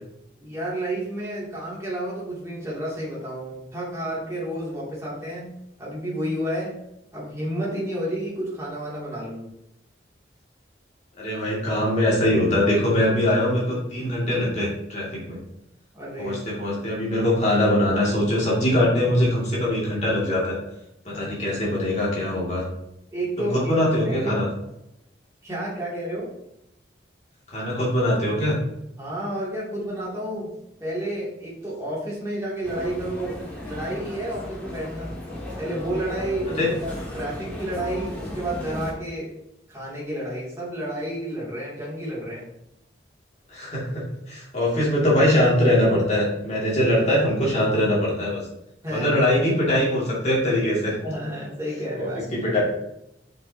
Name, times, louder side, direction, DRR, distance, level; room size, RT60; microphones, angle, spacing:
voice 1, 0.4-5.5 5.8-6.8 7.1-9.5 15.9-16.4 21.1-21.2 23.1-23.6 24.0-24.3 25.4-26.3 29.0-30.5 30.8-35.2 35.6-39.4 39.7-42.4 48.8-49.2 51.0-52.5, right 1 dB, 15° right, -7 dB, 2.6 m, -31 dB
voice 2, 11.2-15.4 16.2-20.6 21.0-22.6 23.4-24.5 27.5-28.6 36.6-36.7 43.5-48.4 48.9-50.9 52.0-52.6, left 1 dB, 35° left, -5 dB, 2.4 m, -22 dB
sound 1, 32.6-38.9, left 1 dB, 5° left, 1.7 m, -35 dB
7.6 x 5.4 x 2.8 m, 0.84 s
head